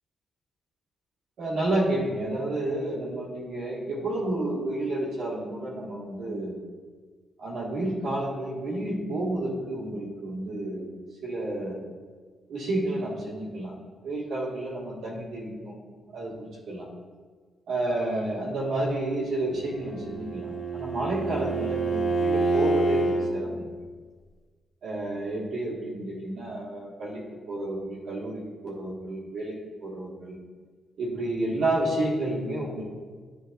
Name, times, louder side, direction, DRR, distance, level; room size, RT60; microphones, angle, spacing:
voice 1, 1.4-6.6 7.4-10.9 11.2-11.8 12.5-13.7 14.0-15.7 16.1-16.9 17.7-23.6 24.8-29.5 29.8-30.4 31.0-32.8, right 1 dB, 75° right, -6 dB, 1.7 m, -30 dB
Bowed string instrument, 19.6-23.3, right 2 dB, 50° left, 1.8 m, -27 dB
10.5 x 3.9 x 2.5 m, 1.5 s
cardioid pair, 140°, 0 cm